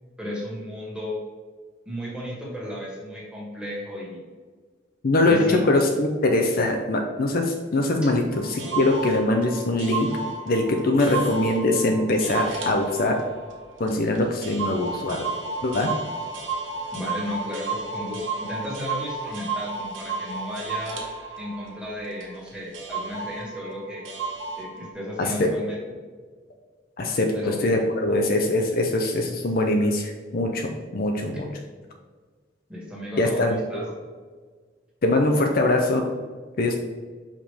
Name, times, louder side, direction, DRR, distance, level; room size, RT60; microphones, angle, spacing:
voice 1, 0.2-1.2 1.9-4.2 5.3-5.6 16.9-21.0 21.4-24.1 24.6-25.8 27.3-27.6 31.3-31.4 32.7-33.8, left 1 dB, 5° right, -5 dB, 1.7 m, -34 dB
voice 2, 5.0-10.1 10.5-13.2 13.8-15.3 15.6-15.9 25.2-25.5 27.0-31.5 33.2-33.8 35.0-36.0 36.6-36.8, left 2 dB, 50° left, 3 dB, 0.6 m, -22 dB
sound 1, 8.3-22.5 22.7-24.9, right 4 dB, 85° right, 1.2 m, -33 dB
5.7 x 5.0 x 3.5 m, 1.5 s
head